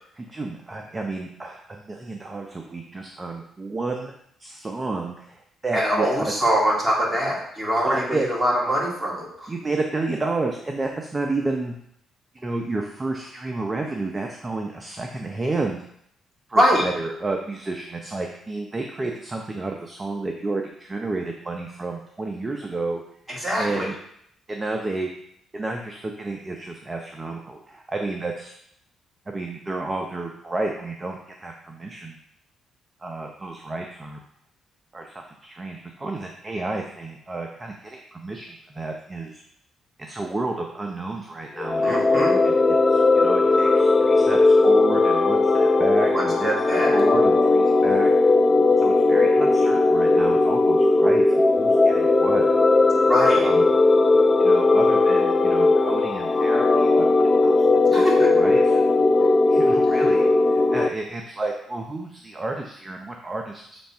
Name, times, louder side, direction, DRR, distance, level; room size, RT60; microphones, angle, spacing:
voice 1, 0.1-4.1 4.4-6.3 7.8-8.3 9.5-11.7 12.3-15.8 16.5-23.0 23.5-24.0 24.5-25.1 25.5-28.5 29.3-32.2 33.0-34.2 34.9-39.4 40.0-42.5 42.9-48.1 48.8-51.2 51.6-52.4 53.2-53.6 54.4-57.6 57.9-58.8 59.5-63.8, right 2 dB, 25° right, 2 dB, 0.7 m, -31 dB
voice 2, 5.7-9.3 16.6-16.9 23.3-23.9 41.8-42.4 46.1-46.9 53.1-53.5 57.9-58.3, equal, 10° right, -4 dB, 2.3 m, -23 dB
sound 1, 41.6-60.9, left 3 dB, 25° left, 0.3 m, -18 dB
7.1 x 3.5 x 4.4 m, 0.71 s
cardioid pair, 90°, 0 cm